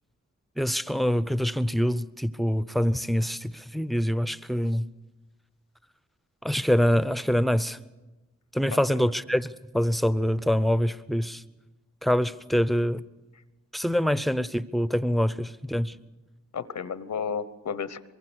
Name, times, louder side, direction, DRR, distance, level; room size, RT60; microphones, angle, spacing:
voice 1, 0.6-4.8 6.4-7.8 8.5-11.4 12.0-13.0 13.7-15.9, equal, ahead, 0.8 m, -25 dB
voice 2, 8.7-9.0 16.5-18.0, left 6 dB, 75° left, 1.0 m, -33 dB
24.0 x 22.5 x 6.4 m
wide cardioid pair, 75°, 29 cm